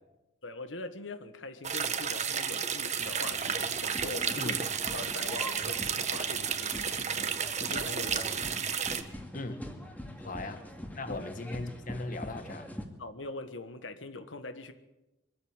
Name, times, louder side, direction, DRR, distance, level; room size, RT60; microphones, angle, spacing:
voice 1, 0.4-4.6 4.9-8.5 10.2-10.3 11.1-11.3 13.0-14.7, left 2 dB, 80° left, 1.5 m, -42 dB
sound 1, 1.6-9.0, right 7 dB, 35° right, 1.3 m, -32 dB
sound 2, 3.0-12.8, equal, 10° left, 2.1 m, -44 dB
voice 2, 10.2-10.6 11.0-12.7, left 2 dB, 45° left, 1.6 m, -38 dB
23.5 x 13.5 x 8.9 m
head